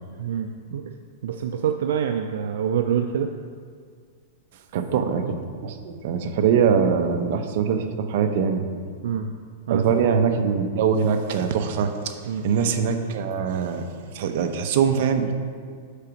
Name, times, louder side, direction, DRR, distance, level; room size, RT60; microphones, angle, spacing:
voice 1, 0.2-1.0 1.2-3.3 9.0-9.3 9.7-9.8 12.3-12.4, right 8 dB, 80° right, 6 dB, 0.4 m, -26 dB
voice 2, 4.7-8.6 9.7-11.9 12.4-13.9 14.1-15.3, right 6 dB, 55° right, 6 dB, 0.8 m, -22 dB
6.6 x 5.1 x 5.8 m, 2.1 s
supercardioid pair, 155°, 0 cm